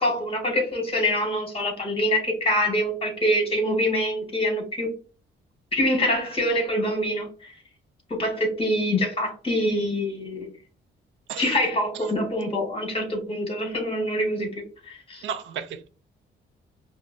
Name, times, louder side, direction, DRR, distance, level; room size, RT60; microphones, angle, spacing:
voice 1, 0.0-4.9 5.7-7.5 8.2-10.5 11.4-15.2, equal, 30° left, 1.5 m, -25 dB
voice 2, 15.2-15.9, right 7 dB, 75° right, 0.4 m, -33 dB
4.9 x 2.0 x 2.5 m
cardioid pair, 90°, 20 cm